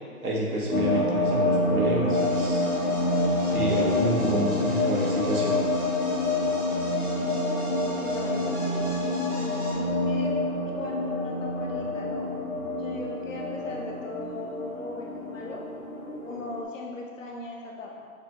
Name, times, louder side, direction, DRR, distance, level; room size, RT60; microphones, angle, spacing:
voice 1, 0.2-2.6 3.4-5.6, right 1 dB, 80° right, -3 dB, 1.4 m, -28 dB
sound 1, 0.7-16.6, left 2 dB, 80° left, 1.2 m, -27 dB
sound 2, 2.1-9.7, equal, 15° right, 1.3 m, -39 dB
voice 2, 8.0-8.8 9.4-10.4 10.6-12.4 12.8-15.6 16.2-18.1, left 2 dB, 60° left, -1 dB, 0.8 m, -39 dB
6.6 x 2.9 x 2.5 m, 2.2 s
hypercardioid pair, 170°, 44 cm